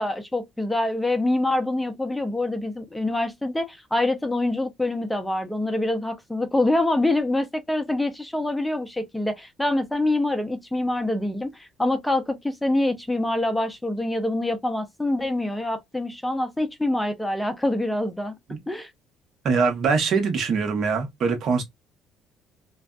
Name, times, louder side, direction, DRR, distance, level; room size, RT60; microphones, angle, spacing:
voice 1, 0.0-18.3 18.7-18.9, left 1 dB, 5° left, 0.5 m, -25 dB
voice 2, 19.4-21.6, right 5 dB, 55° right, 0.9 m, -23 dB
2.5 x 2.3 x 2.2 m
cardioid pair, 100°, 0 cm